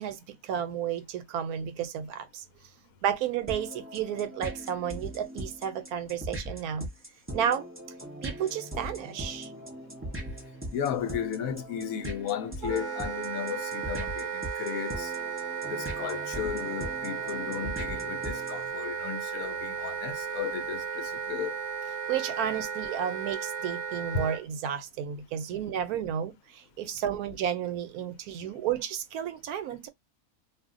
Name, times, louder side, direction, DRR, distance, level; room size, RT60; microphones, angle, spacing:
voice 1, 0.0-2.4 3.0-6.9 7.3-7.7 8.2-9.5 22.1-29.9, right 9 dB, 90° right, 1.1 m, -32 dB
sound 1, 3.5-18.7, equal, 15° right, 0.5 m, -40 dB
voice 2, 10.7-15.1 15.7-21.6 24.1-24.3, left 8 dB, 75° left, 1.0 m, -34 dB
Wind instrument woodwind instrument, 12.6-24.4, right 6 dB, 65° right, 1.0 m, -35 dB
2.6 x 2.1 x 3.6 m
omnidirectional pair, 1.5 m